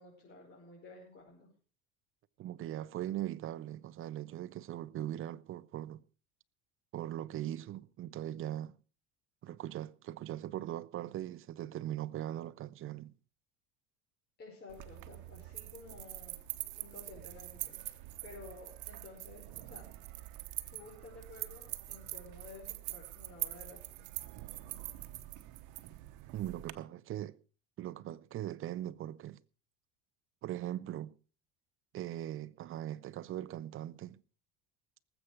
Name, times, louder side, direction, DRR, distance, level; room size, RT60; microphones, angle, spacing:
voice 1, 0.0-1.5 14.4-16.4 16.8-19.9 20.7-24.1, left 3 dB, 30° left, 5.4 m, -53 dB
voice 2, 2.4-6.0 6.9-8.7 9.4-13.1 26.3-27.4 27.8-29.4 30.4-31.1 31.9-34.2, right 12 dB, 40° right, 0.7 m, -40 dB
sound 1, 14.7-26.7, right 18 dB, 65° right, 1.1 m, -44 dB
19.0 x 8.1 x 4.9 m
supercardioid pair, 115°, 33 cm